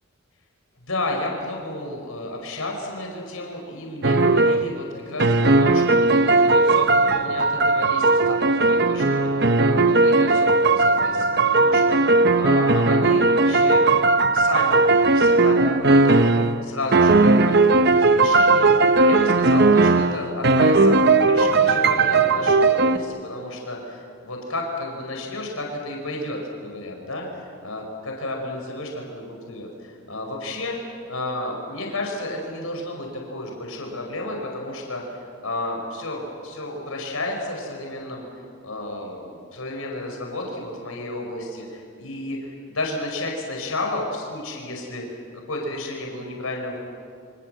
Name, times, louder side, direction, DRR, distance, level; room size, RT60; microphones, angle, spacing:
voice 1, 0.9-9.3 9.6-35.0 35.4-38.2 38.6-45.2 45.5-46.8, left 2 dB, 75° left, 1 dB, 5.1 m, -32 dB
sound 1, 4.0-4.7 5.2-16.7 16.9-23.0, right 3 dB, 50° right, 0.9 m, -17 dB
28.0 x 26.0 x 7.8 m, 2.4 s
head